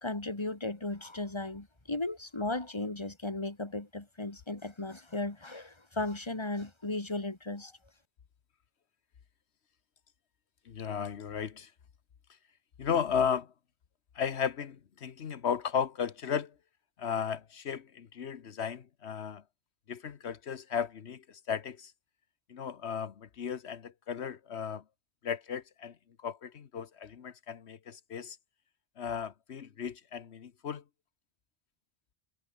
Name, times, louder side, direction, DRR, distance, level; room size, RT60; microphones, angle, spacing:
voice 1, 0.0-7.7, left 2 dB, 25° left, 2.3 m, -36 dB
voice 2, 10.6-11.7 12.8-13.5 14.1-16.5 17.0-19.4 19.9-21.9 22.5-24.8 25.2-28.4 29.0-30.8, left 7 dB, 85° left, 1.3 m, -35 dB
omnidirectional pair, 1.1 m